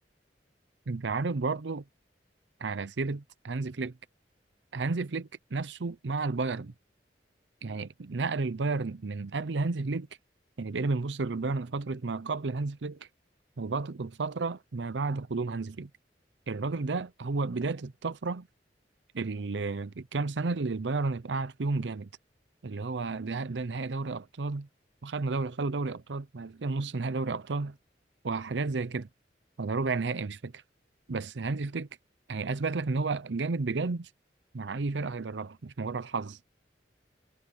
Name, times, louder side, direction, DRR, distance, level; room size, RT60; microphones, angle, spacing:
voice 1, 0.9-1.8 2.6-4.0 4.7-6.7 7.6-10.1 10.6-13.1 13.6-15.9 16.5-18.5 19.1-22.1 22.6-24.7 25.0-27.8 28.2-29.1 29.6-30.6 31.1-31.9 32.3-34.1 34.5-36.4, right 3 dB, 80° right, 0.7 m, -32 dB
head